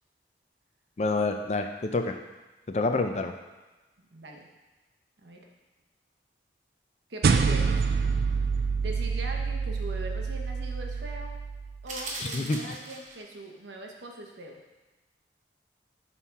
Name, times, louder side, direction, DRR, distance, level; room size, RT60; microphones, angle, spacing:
voice 1, 1.0-2.2 2.7-3.3 12.2-12.6, left 3 dB, 40° left, 6 dB, 0.4 m, -27 dB
voice 2, 4.1-4.5 5.2-5.4 7.1-7.9 8.8-11.3 11.8-14.6, right 1 dB, 80° right, 1 dB, 0.9 m, -41 dB
sound 1, 7.2-11.9, right 5 dB, 60° right, 0.3 m, -27 dB
sound 2, 11.9-13.3, right 2 dB, 45° right, 0.8 m, -38 dB
5.5 x 4.2 x 4.6 m, 1.1 s
head